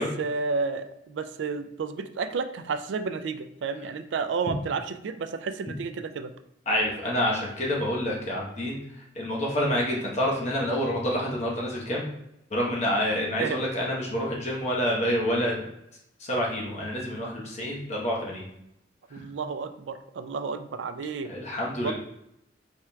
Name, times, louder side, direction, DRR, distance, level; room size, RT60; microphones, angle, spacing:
voice 1, 0.0-6.3 13.4-13.6 19.1-21.3 21.8-21.9, right 4 dB, 75° right, 9 dB, 0.3 m, -31 dB
voice 2, 6.7-8.8 9.1-12.0 12.5-15.6 16.2-18.5 19.1-19.2 21.3-21.9, equal, 40° left, -3 dB, 1.0 m, -27 dB
4.3 x 3.5 x 2.3 m, 0.81 s
head